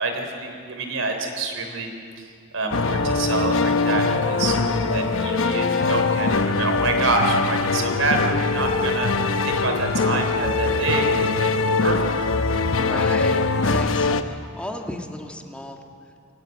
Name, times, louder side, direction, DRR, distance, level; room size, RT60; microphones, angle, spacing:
voice 1, 0.0-1.9 2.2-2.3 2.5-4.6 4.9-9.1 9.4-11.1 11.4-12.1, right 3 dB, 85° right, 4 dB, 3.6 m, -27 dB
sound 1, 2.6-10.9, left 1 dB, 70° right, 6.1 m, -41 dB
sound 2, 2.7-14.2, left 3 dB, 75° left, 1.0 m, -22 dB
voice 2, 12.7-15.8, left 1 dB, 5° left, 2 dB, 1.7 m, -35 dB
24.0 x 17.0 x 9.2 m, 2.5 s
head